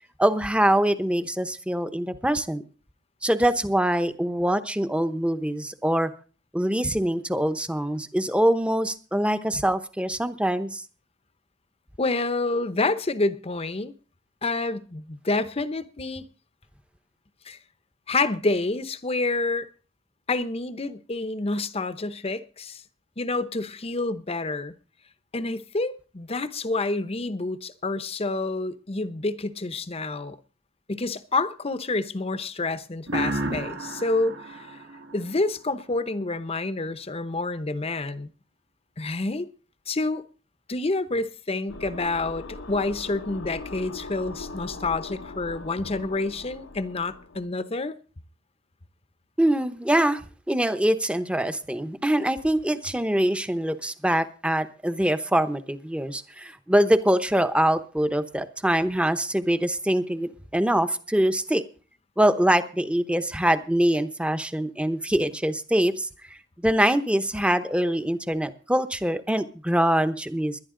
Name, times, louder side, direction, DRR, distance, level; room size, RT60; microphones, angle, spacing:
voice 1, 0.2-2.6 3.2-6.1 6.5-10.8 49.4-50.2 50.5-61.6 62.2-66.1 66.6-70.6, right 1 dB, 5° right, 0.9 m, -24 dB
voice 2, 12.0-13.9 14.4-16.2 17.5-17.6 18.1-19.7 20.3-22.8 23.2-24.7 25.3-30.4 30.9-34.7 35.1-38.3 39.0-39.5 39.9-40.2 40.7-48.0, left 3 dB, 30° left, 0.8 m, -28 dB
sound 1, 33.1-35.7, right 1 dB, 80° right, 2.3 m, -32 dB
sound 2, 41.7-47.5, left 3 dB, 85° left, 1.0 m, -40 dB
20.5 x 11.0 x 3.8 m
head